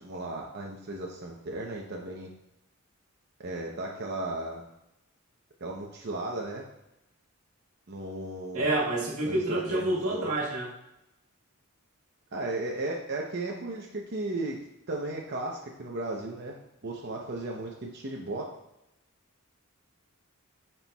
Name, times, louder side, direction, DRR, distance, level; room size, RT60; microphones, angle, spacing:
voice 1, 0.0-2.3 3.4-4.6 5.6-6.6 7.9-8.7 9.2-10.3 12.3-14.6 14.9-16.6 16.8-18.5, right 2 dB, 50° right, -1 dB, 0.7 m, -35 dB
voice 2, 8.5-10.7, right 1 dB, 85° right, -4 dB, 1.6 m, -28 dB
9.2 x 4.4 x 2.3 m, 0.87 s
head